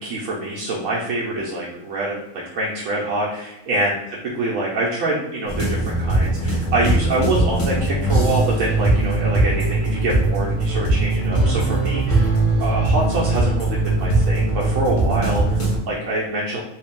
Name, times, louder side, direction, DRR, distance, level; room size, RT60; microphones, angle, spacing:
voice 1, 0.0-12.3 12.6-16.6, right 2 dB, 70° right, -4 dB, 1.0 m, -25 dB
sound 1, 5.5-15.8, right 2 dB, 30° left, 0.8 m, -20 dB
3.2 x 2.6 x 3.5 m, 0.90 s
omnidirectional pair, 1.5 m